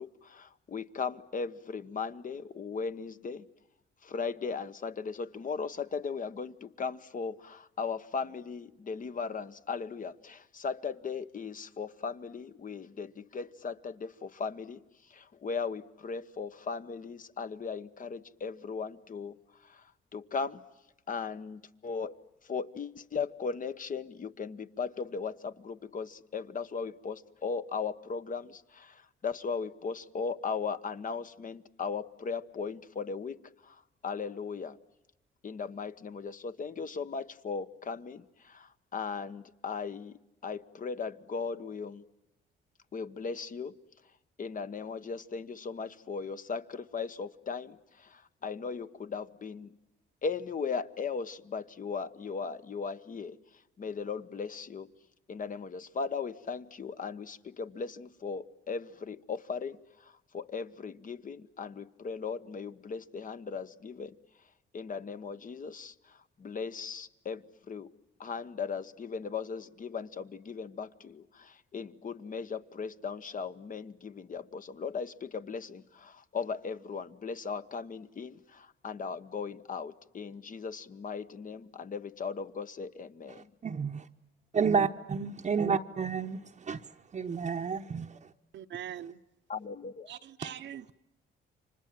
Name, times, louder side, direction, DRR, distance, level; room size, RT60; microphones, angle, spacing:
voice 1, 0.0-3.4 4.0-14.8 15.1-20.6 21.1-34.8 35.4-42.0 42.9-43.8 44.4-49.8 50.2-53.4 53.8-54.9 55.3-64.2 64.7-67.9 68.2-83.5 89.5-90.1, left 5 dB, 40° left, 1.1 m, -38 dB
voice 2, 83.6-84.1 84.5-86.4 86.7-86.8 87.1-88.3 90.4-90.5, right 6 dB, 35° right, 0.9 m, -30 dB
voice 3, 88.5-89.2 90.1-90.9, right 10 dB, 65° right, 0.9 m, -42 dB
29.5 x 25.5 x 7.6 m
cardioid pair, 90°, 20 cm